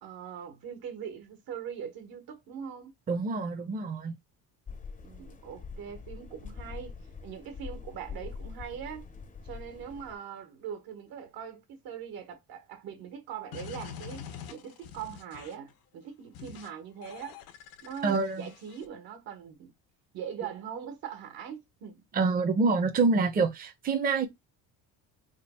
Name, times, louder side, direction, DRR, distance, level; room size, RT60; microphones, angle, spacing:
voice 1, 0.0-2.9 5.0-6.9 7.2-9.1 9.4-17.4 17.8-19.7 20.1-22.0, right 8 dB, 75° right, 1.4 m, -41 dB
voice 2, 3.1-4.2 18.0-18.5 22.1-24.3, right 4 dB, 25° right, 0.6 m, -26 dB
sound 1, 4.7-10.1, left 5 dB, 20° left, 0.6 m, -44 dB
sound 2, 13.5-15.7 16.3-16.7 17.0-18.9, left 8 dB, 80° left, 0.9 m, -45 dB
3.6 x 2.3 x 4.2 m
cardioid pair, 110°, 36 cm